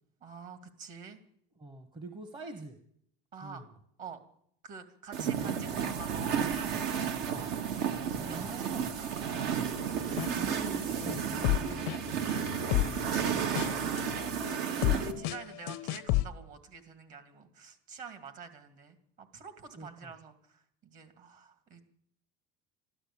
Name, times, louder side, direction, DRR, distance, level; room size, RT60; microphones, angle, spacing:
voice 1, 0.2-1.2 3.3-3.6 4.0-4.2 4.6-7.6 8.1-8.7 9.0-9.1 12.2-12.5 14.5-21.8, right 5 dB, 45° right, 9 dB, 2.4 m, -47 dB
voice 2, 1.6-2.8 3.4-3.7 5.2-5.3 8.3-8.9 10.1-12.1 13.1-14.2 19.7-20.1, right 2 dB, 25° right, 6 dB, 1.3 m, -45 dB
sound 1, 5.1-15.1, right 8 dB, 65° right, 1.7 m, -32 dB
sound 2, 9.8-16.3, left 16 dB, 70° left, 0.7 m, -33 dB
13.0 x 12.5 x 8.5 m, 0.67 s
cardioid pair, 150°, 19 cm